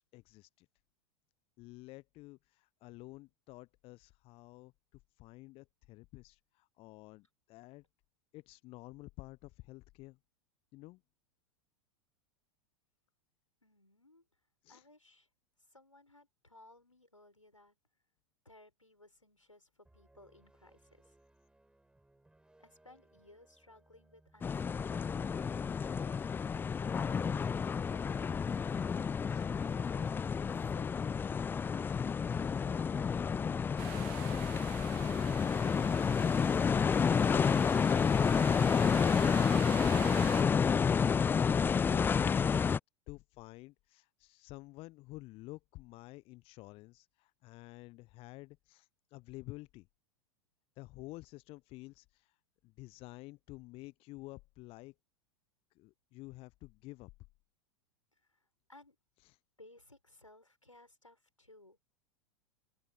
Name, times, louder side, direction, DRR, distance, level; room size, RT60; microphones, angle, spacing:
voice 1, 0.1-0.7 1.6-4.7 5.2-7.8 8.3-10.2 10.7-11.0 14.6-14.8 29.3-29.5 43.1-49.9 50.8-52.3 52.6-54.9 55.8-57.1, left 21 dB, 35° left, 1.0 m, -50 dB
voice 2, 13.6-14.2 14.7-15.3 15.6-17.8 18.4-21.2 22.6-25.6 27.7-28.9 29.8-31.5 58.2-59.0 59.6-61.8, left 2 dB, 85° left, 6.7 m, -61 dB
sound 1, 19.8-39.0, right 2 dB, 5° right, 6.6 m, -67 dB
sound 2, 24.4-42.8, left 6 dB, 15° left, 0.5 m, -30 dB
sound 3, 33.8-40.4, right 28 dB, 45° right, 0.9 m, -47 dB
open air
figure-of-eight pair, 90°, 16 cm